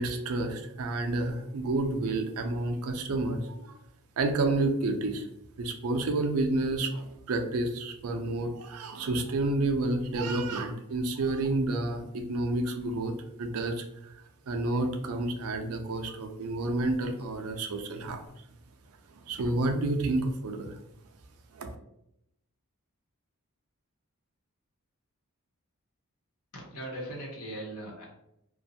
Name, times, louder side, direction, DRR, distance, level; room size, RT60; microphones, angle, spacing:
voice 1, 0.0-3.7 4.2-5.3 5.6-13.1 13.4-13.8 14.5-18.2 19.3-20.7 21.5-21.7, right 2 dB, 70° right, 5 dB, 0.4 m, -30 dB
voice 2, 26.5-28.0, right 1 dB, 90° left, -3 dB, 1.0 m, -39 dB
2.4 x 2.2 x 2.7 m, 0.81 s
head